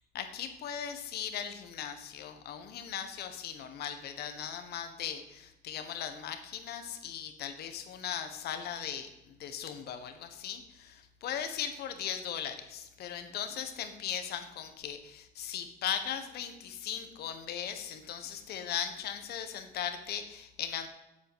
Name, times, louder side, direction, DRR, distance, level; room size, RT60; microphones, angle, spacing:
voice 1, 0.1-20.9, left 9 dB, 70° left, 8 dB, 1.4 m, -38 dB
8.5 x 7.9 x 8.0 m, 0.91 s
cardioid pair, 110°, 17 cm